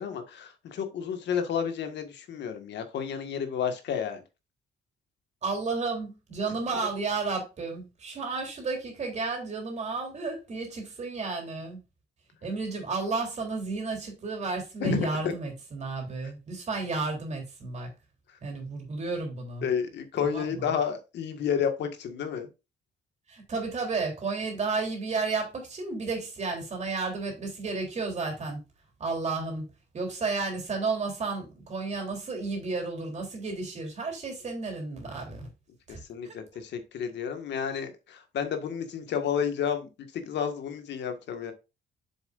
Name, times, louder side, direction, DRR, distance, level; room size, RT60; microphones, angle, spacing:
voice 1, 0.0-4.2 14.8-15.3 19.6-22.5 35.9-41.5, left 7 dB, 70° left, 1.7 m, -31 dB
voice 2, 5.4-11.8 12.4-17.9 18.4-19.7 20.3-20.8 23.3-28.6 29.0-29.7 29.9-35.5 35.9-36.4, right 4 dB, 40° right, 3.4 m, -32 dB
7.4 x 7.2 x 2.5 m
cardioid pair, 145°, 19 cm